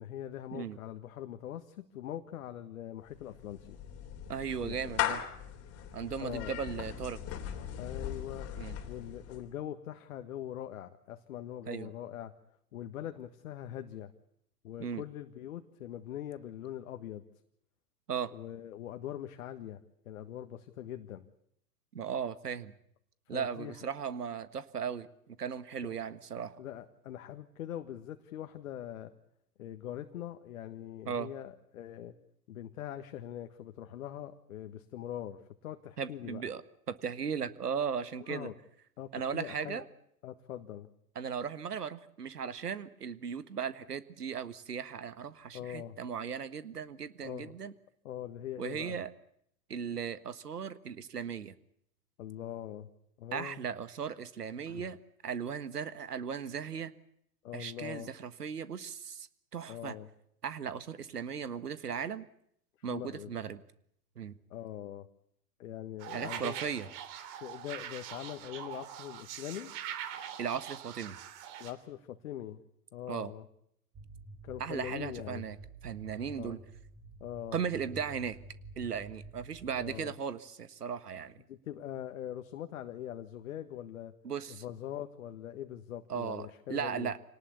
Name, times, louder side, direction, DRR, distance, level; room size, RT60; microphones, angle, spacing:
voice 1, 0.0-3.8 4.6-5.1 6.2-6.6 7.8-8.5 8.9-12.3 12.7-14.1 14.6-17.2 18.3-19.8 20.0-21.2 23.3-23.9 26.6-29.1 29.6-32.1 32.5-36.4 38.2-38.5 39.0-39.8 40.2-40.9 45.5-46.0 47.2-47.5 48.0-49.0 52.2-52.9 53.2-53.6 54.7-54.9 57.4-58.1 59.7-60.1 62.9-63.3 64.5-65.1 65.6-66.7 67.4-69.7 71.6-72.6 72.9-73.4 74.4-75.4 76.4-76.6 77.2-77.6 79.7-80.1 81.5-84.1 84.5-87.1, left 11 dB, 60° left, 7 dB, 1.6 m, -42 dB
Clapping / Meow, 3.1-9.5, left 10 dB, 30° left, 3.3 m, -39 dB
voice 2, 4.3-5.2 5.9-7.2 8.6-8.8 11.7-11.9 14.8-15.0 18.1-18.3 21.9-22.7 23.3-26.6 31.1-31.3 36.0-36.6 36.9-38.5 39.1-39.8 41.1-47.7 48.6-49.1 49.7-51.5 53.3-55.0 55.2-56.9 57.5-59.3 59.5-59.9 60.4-62.3 62.8-63.6 64.1-64.4 66.1-66.9 70.4-71.2 73.1-73.3 74.6-75.6 75.8-76.6 77.5-78.4 78.8-81.4 84.2-84.6 86.1-87.2, right 7 dB, 80° right, 14 dB, 1.7 m, -37 dB
sound 1, 66.0-71.7, right 10 dB, 40° right, 3.3 m, -43 dB
sound 2, 73.9-80.0, right 2 dB, 20° right, 5.4 m, -50 dB
27.5 x 19.0 x 8.4 m, 0.73 s
figure-of-eight pair, 100°, 46 cm